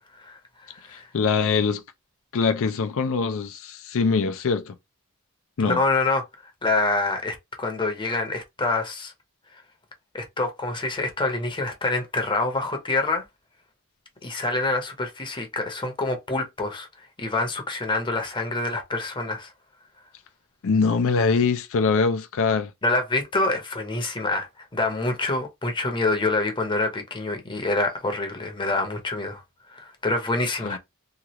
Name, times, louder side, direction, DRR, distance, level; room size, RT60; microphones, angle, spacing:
voice 1, 1.1-1.8 2.3-4.7 5.6-5.8 20.6-22.7 30.6-30.8, left 5 dB, 65° left, 0.5 m, -23 dB
voice 2, 5.6-6.2 6.6-9.1 10.1-13.2 14.2-16.9 17.2-19.5 22.8-29.4 29.7-30.8, left 2 dB, 20° left, 0.8 m, -26 dB
2.9 x 2.4 x 2.9 m
head